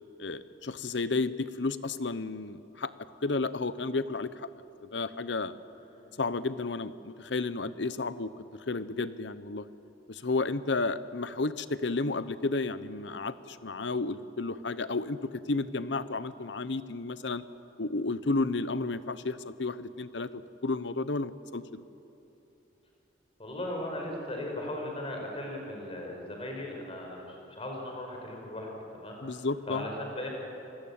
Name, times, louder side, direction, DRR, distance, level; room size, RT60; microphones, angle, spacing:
voice 1, 0.2-2.9 3.2-4.3 4.8-5.5 6.2-8.3 8.7-9.7 10.1-17.4 17.8-21.8 29.2-29.9, left 3 dB, 70° left, 14 dB, 0.9 m, -32 dB
voice 2, 5.9-6.2 23.4-29.4 29.7-30.3, left 1 dB, 30° left, 1 dB, 5.3 m, -38 dB
26.0 x 19.5 x 8.8 m, 3.0 s
head